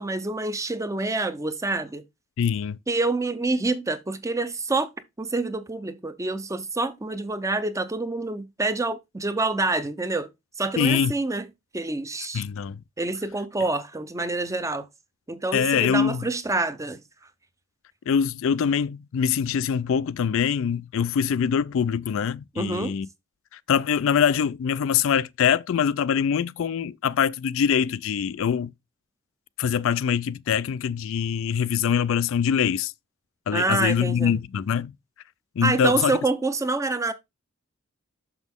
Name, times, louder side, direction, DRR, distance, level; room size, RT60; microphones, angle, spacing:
voice 1, 0.0-2.0 2.9-4.9 5.2-10.3 10.6-11.5 11.7-12.4 13.0-14.9 15.3-17.0 22.6-23.0 33.5-34.3 35.6-37.1, right 3 dB, 15° right, 0.6 m, -27 dB
voice 2, 2.4-2.8 10.8-11.1 12.3-12.8 15.5-16.2 18.1-23.1 23.5-28.7 29.6-32.9 33.5-34.9 35.6-36.1, left 7 dB, 65° left, 0.3 m, -24 dB
6.1 x 6.1 x 3.5 m
head